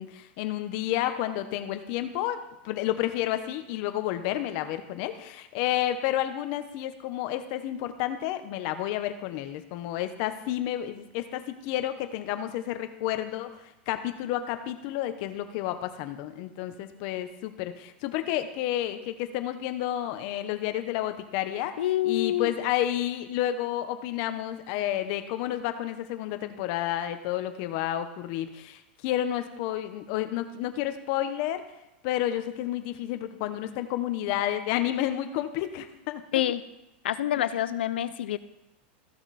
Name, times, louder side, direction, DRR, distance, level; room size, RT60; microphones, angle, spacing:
voice 1, 0.0-21.7 22.0-31.6 32.0-36.2, left 12 dB, 50° left, 9 dB, 0.9 m, -30 dB
voice 2, 21.8-22.5 36.3-36.6 37.0-38.4, left 12 dB, 85° left, 14 dB, 0.6 m, -27 dB
14.5 x 5.9 x 4.2 m, 0.93 s
supercardioid pair, 140°, 6 cm